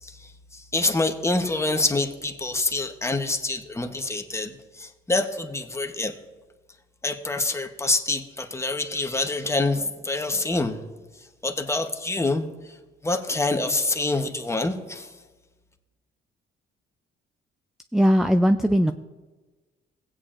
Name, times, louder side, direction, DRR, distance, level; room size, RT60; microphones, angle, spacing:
voice 1, 0.0-6.1 7.0-10.8 11.4-12.8 13.0-15.1, left 2 dB, 15° left, 6 dB, 0.9 m, -26 dB
voice 2, 17.9-18.9, equal, ahead, 9 dB, 0.3 m, -19 dB
16.5 x 8.8 x 2.5 m, 1.2 s
cardioid pair, 90°, 20 cm